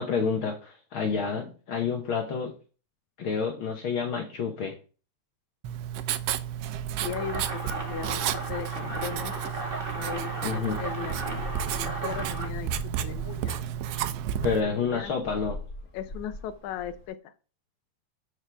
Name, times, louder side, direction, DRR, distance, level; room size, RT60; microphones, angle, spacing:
voice 1, 0.0-2.5 3.2-4.7 10.4-10.8 13.9-14.0 14.4-15.6, left 5 dB, 65° left, 3 dB, 1.4 m, -29 dB
Writing, 5.6-14.6, right 10 dB, 90° right, 1.4 m, -32 dB
voice 2, 7.0-9.3 9.9-11.5 11.7-12.7 13.0-13.6 14.6-15.1 15.9-17.3, left 9 dB, 80° left, 12 dB, 2.0 m, -38 dB
sound 1, 7.0-12.5, right 2 dB, 50° right, 0.6 m, -35 dB
Gull seagull, 7.7-17.1, equal, 35° left, 1.7 m, -43 dB
13.0 x 4.7 x 3.4 m, 0.37 s
omnidirectional pair, 3.4 m